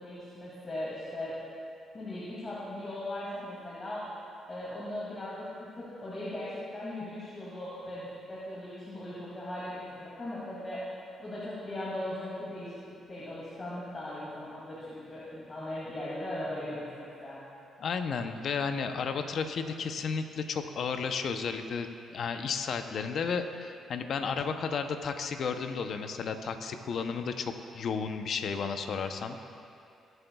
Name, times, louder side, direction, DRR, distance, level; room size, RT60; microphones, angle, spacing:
voice 1, 0.0-1.4 1.9-4.1 4.5-10.8 11.2-17.4, left 1 dB, 30° left, -8 dB, 2.4 m, -38 dB
voice 2, 17.8-29.4, left 5 dB, 60° left, 7 dB, 0.7 m, -33 dB
22.0 x 7.9 x 2.3 m, 2.5 s
cardioid pair, 90°, 0 cm